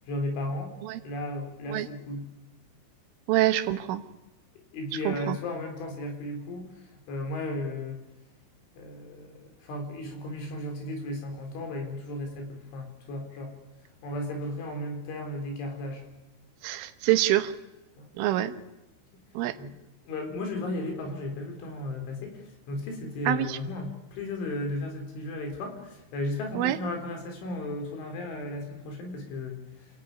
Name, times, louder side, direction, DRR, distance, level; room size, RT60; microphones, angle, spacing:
voice 1, 0.1-0.8 1.0-2.2 4.7-8.0 8.8-13.6 14.0-16.0 18.0-18.1 19.6-19.7 20.1-29.6, left 1 dB, 70° left, 4 dB, 6.4 m, -35 dB
voice 2, 3.3-4.0 5.1-5.4 16.6-17.5 18.2-18.5 19.4-19.6 23.3-23.6 26.6-26.8, right 14 dB, 85° right, 10 dB, 3.7 m, -25 dB
28.5 x 16.5 x 9.5 m, 1.0 s
omnidirectional pair, 5.6 m